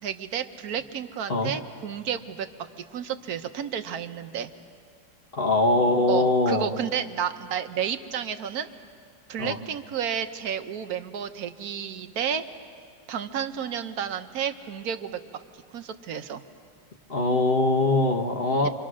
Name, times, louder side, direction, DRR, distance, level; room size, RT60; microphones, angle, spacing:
voice 1, 0.0-4.5 6.1-8.7 9.3-12.5 13.1-15.4 15.7-16.4 18.6-18.7, right 8 dB, 60° right, 9 dB, 1.3 m, -31 dB
voice 2, 5.3-6.7 9.4-9.6 17.1-18.7, left 2 dB, 35° left, 2 dB, 1.3 m, -22 dB
28.5 x 25.5 x 6.3 m, 2.2 s
omnidirectional pair, 2.0 m